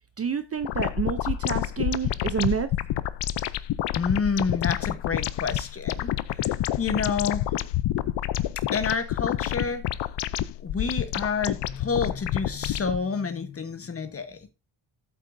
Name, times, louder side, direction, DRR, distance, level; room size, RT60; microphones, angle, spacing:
voice 1, 0.2-2.7, right 7 dB, 30° right, 0.5 m, -28 dB
sound 1, 0.6-13.0, left 13 dB, 60° left, 0.6 m, -28 dB
voice 2, 4.0-6.1 6.3-6.5 6.8-7.5 8.7-9.8 10.6-14.5, left 5 dB, 30° left, 1.0 m, -29 dB
8.3 x 8.3 x 2.6 m
cardioid pair, 150°, 50 cm